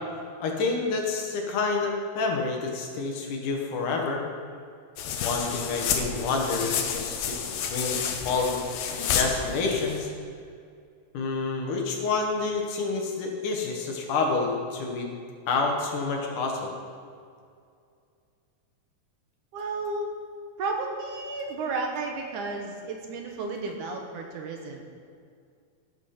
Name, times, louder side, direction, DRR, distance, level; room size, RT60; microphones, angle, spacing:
voice 1, 0.4-4.2 5.2-7.4 7.7-10.1 11.1-15.1 15.5-16.7, left 4 dB, 70° left, 1 dB, 2.7 m, -28 dB
sound 1, 5.0-10.0, left 7 dB, 90° left, 2.6 m, -30 dB
voice 2, 19.5-20.1 20.6-24.8, right 3 dB, 70° right, 2 dB, 2.3 m, -32 dB
12.0 x 8.1 x 5.7 m, 2.3 s
omnidirectional pair, 3.9 m